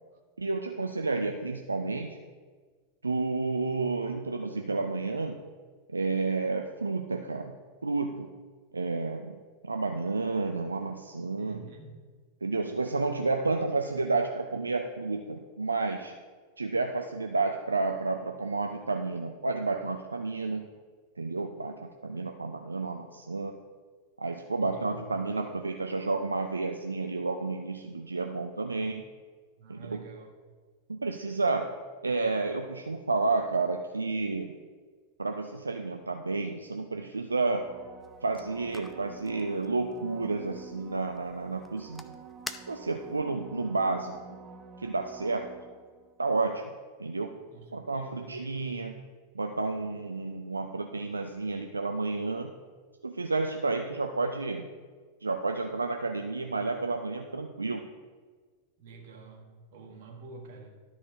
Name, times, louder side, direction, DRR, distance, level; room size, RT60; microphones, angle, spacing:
voice 1, 0.4-2.2 3.0-5.4 5.9-7.5 7.8-8.3 8.7-9.4 9.6-11.7 12.4-16.1 16.6-20.6 21.2-23.5 24.2-29.0 29.7-30.0 30.9-31.8 32.0-34.6 35.2-37.7 38.2-42.1 42.7-44.4 44.8-45.5 46.2-46.7 47.0-47.4 47.7-48.9 49.3-52.5 53.0-54.7 55.2-57.8, right 3 dB, 80° right, 4 dB, 0.5 m, -31 dB
voice 2, 11.4-12.0 24.6-25.1 29.6-30.3 47.5-48.8 58.8-60.8, right 4 dB, 55° right, 2 dB, 1.5 m, -48 dB
sound 1, 37.5-46.2 51.5-51.6, right 5 dB, 25° right, 0.8 m, -48 dB
sound 2, 38.0-43.2, left 2 dB, 5° left, 0.5 m, -48 dB
12.5 x 4.3 x 4.7 m, 1.5 s
figure-of-eight pair, 90°, 0 cm